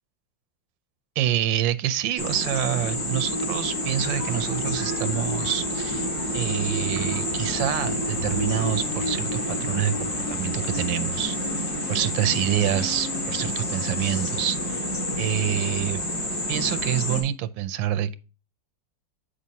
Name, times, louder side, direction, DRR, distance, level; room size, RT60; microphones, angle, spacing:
voice 1, 1.2-6.1 6.3-11.4 11.9-14.9 15.2-16.0 16.5-18.2, right 11 dB, 85° right, 1.3 m, -27 dB
sound 1, 2.2-17.2, left 1 dB, 80° left, 3.8 m, -28 dB
sound 2, 3.8-8.8, left 1 dB, 60° left, 4.2 m, -40 dB
8.3 x 6.3 x 2.7 m
omnidirectional pair, 2.0 m